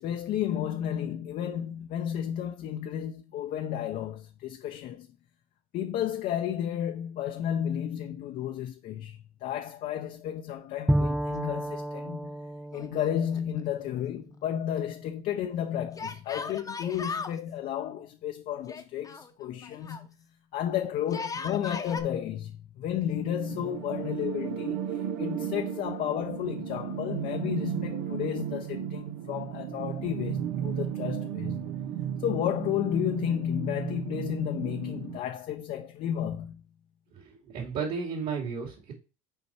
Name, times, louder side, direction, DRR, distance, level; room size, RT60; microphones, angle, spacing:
voice 1, 0.0-5.1 5.7-12.4 12.7-20.1 20.5-31.8 32.2-36.6, left 10 dB, 55° left, 0.6 m, -32 dB
Bowed string instrument, 10.9-14.6, right 1 dB, 5° right, 0.3 m, -32 dB
Yell, 12.7-13.6 13.8-13.9 16.0-17.4 18.7-20.1 21.0-22.0, left 4 dB, 20° left, 0.8 m, -38 dB
sound 1, 23.2-35.2, right 9 dB, 80° right, 0.8 m, -34 dB
voice 2, 37.1-38.9, right 5 dB, 55° right, 2.5 m, -33 dB
5.5 x 4.4 x 4.3 m
supercardioid pair, 110°, 17 cm